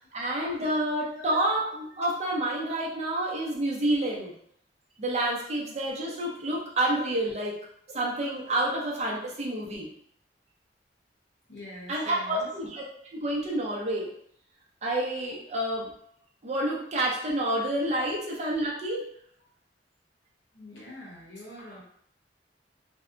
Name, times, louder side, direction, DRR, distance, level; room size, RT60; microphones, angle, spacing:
voice 1, 0.1-4.3 5.0-7.5 7.9-9.9 11.9-12.8 13.1-14.1 14.8-15.9 16.4-19.0, right 1 dB, 40° right, -3 dB, 0.6 m, -29 dB
voice 2, 11.5-12.5 20.5-21.8, left 1 dB, 80° left, -4 dB, 1.0 m, -44 dB
2.6 x 2.1 x 2.5 m, 0.68 s
head